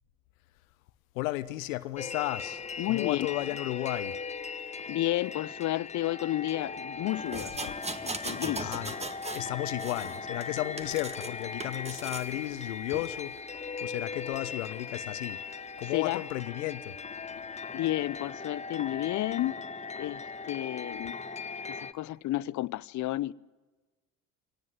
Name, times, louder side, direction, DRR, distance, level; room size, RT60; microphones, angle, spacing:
voice 1, 1.1-4.2 8.6-9.0 9.3-17.0, left 17 dB, 70° left, 1.0 m, -34 dB
sound 1, 2.0-21.9, left 5 dB, 15° left, 1.0 m, -39 dB
voice 2, 2.8-3.3 4.9-7.7 8.0-8.7 15.9-16.2 17.7-19.6 20.0-21.2 21.7-23.3, left 15 dB, 45° left, 0.8 m, -31 dB
sound 2, 7.3-9.5 9.8-11.3 11.6-12.3 12.9-13.1, right 2 dB, 15° right, 1.8 m, -38 dB
25.0 x 18.5 x 9.5 m
hypercardioid pair, 60°, 41 cm